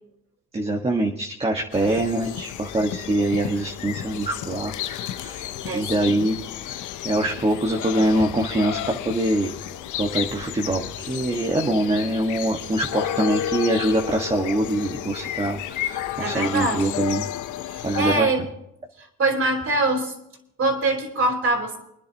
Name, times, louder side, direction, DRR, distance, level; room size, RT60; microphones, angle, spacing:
voice 1, 0.5-5.5 5.7-6.4 6.7-6.8 7.0-9.5 10.0-17.3 17.8-18.3, right 1 dB, 20° right, 1 dB, 1.7 m, -24 dB
sound 1, 1.7-18.2, left 12 dB, 80° left, 0.9 m, -32 dB
voice 2, 5.6-6.2 16.2-17.0 17.7-18.4 19.2-20.1 20.6-21.8, right 2 dB, 50° right, 1 dB, 4.6 m, -24 dB
29.0 x 10.0 x 3.0 m, 0.78 s
cardioid pair, 90°, 30 cm